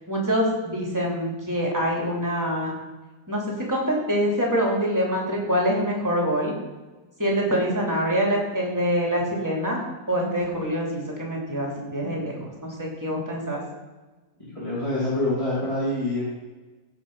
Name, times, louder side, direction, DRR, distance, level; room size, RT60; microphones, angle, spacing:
voice 1, 0.1-2.7 3.3-6.5 7.2-13.6, equal, 10° right, -2 dB, 2.9 m, -25 dB
voice 2, 14.5-16.2, left 1 dB, 15° left, -8 dB, 2.9 m, -25 dB
15.5 x 5.5 x 5.4 m, 1.2 s
omnidirectional pair, 1.9 m